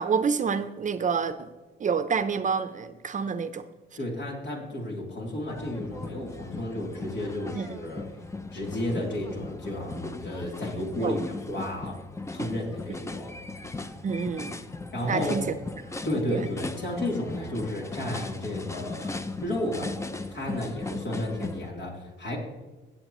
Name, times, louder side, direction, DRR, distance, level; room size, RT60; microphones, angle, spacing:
voice 1, 0.0-1.5 1.8-3.6 7.5-7.8 11.0-11.2 14.0-14.6 15.1-15.5 16.3-16.5 20.9-21.0, right 6 dB, 40° right, 11 dB, 0.7 m, -28 dB
voice 2, 4.0-8.1 8.5-12.0 12.3-13.4 14.9-15.4 16.0-19.1 19.4-19.9 20.3-22.4, left 1 dB, 65° left, -1 dB, 3.2 m, -32 dB
sound 1, 5.5-21.7, left 2 dB, 15° left, 0.6 m, -38 dB
16.5 x 7.5 x 3.1 m, 1.2 s
cardioid pair, 90°, 20 cm